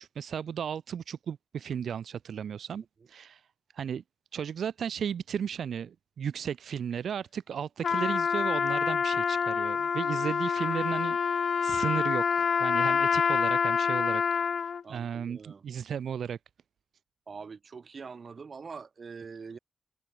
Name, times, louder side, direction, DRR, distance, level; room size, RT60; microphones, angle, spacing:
voice 1, 0.0-3.4 3.7-4.0 4.3-14.5 14.9-16.4, right 8 dB, 80° right, 1.1 m, -35 dB
Trumpet, 7.8-14.8, left 6 dB, 55° left, 1.0 m, -27 dB
voice 2, 14.8-15.6 17.3-19.6, right 5 dB, 40° right, 3.5 m, -44 dB
wide cardioid pair, 165°, 0 cm